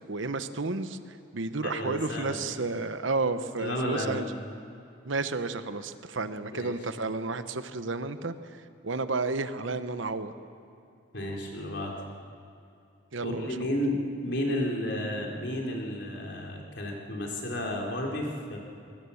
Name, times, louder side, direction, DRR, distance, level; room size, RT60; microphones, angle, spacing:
voice 1, 0.1-1.0 1.3-4.3 5.0-8.3 8.8-10.3 13.1-13.7, right 3 dB, 75° right, 11 dB, 1.0 m, -31 dB
voice 2, 1.6-2.5 3.6-4.3 6.5-6.7 11.1-11.9 13.2-18.6, left 1 dB, 60° left, 0 dB, 3.9 m, -32 dB
24.0 x 21.0 x 7.2 m, 2.6 s
head